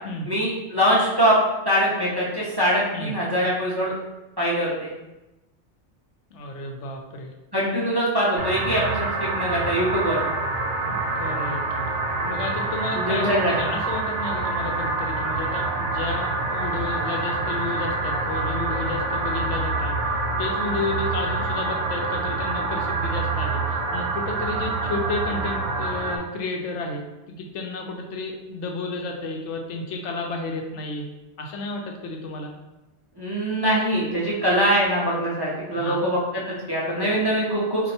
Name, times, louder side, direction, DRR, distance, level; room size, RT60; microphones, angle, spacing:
voice 1, 0.3-1.4 1.7-3.9 4.4-4.9 7.5-10.2 12.9-13.7 33.2-37.9, equal, 25° right, -7 dB, 0.6 m, -23 dB
voice 2, 6.3-7.3 10.8-11.9 12.2-31.1 31.4-32.5 35.7-36.0, left 3 dB, 80° left, 2 dB, 0.9 m, -32 dB
sound 1, 8.4-26.2, right 3 dB, 85° right, 0.9 m, -26 dB
4.2 x 2.6 x 2.7 m, 1.0 s
omnidirectional pair, 1.2 m